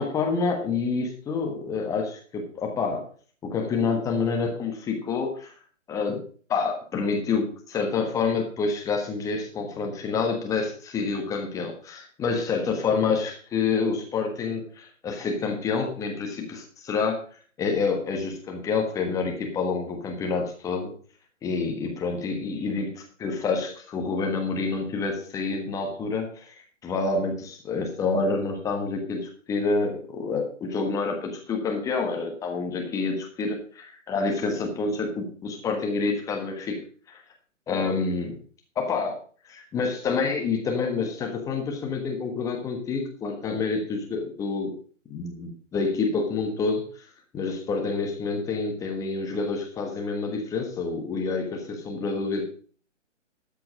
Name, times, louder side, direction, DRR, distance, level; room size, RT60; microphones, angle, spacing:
voice 1, 0.0-3.0 3.4-5.5 5.9-6.2 6.5-17.2 17.6-20.9 21.4-36.8 37.1-37.2 37.7-38.3 38.8-39.1 39.4-44.7 45.1-47.0 47.3-52.4, left 4 dB, 10° left, 2 dB, 1.3 m, -28 dB
13.5 x 6.8 x 5.0 m, 0.43 s
figure-of-eight pair, 140°, 38 cm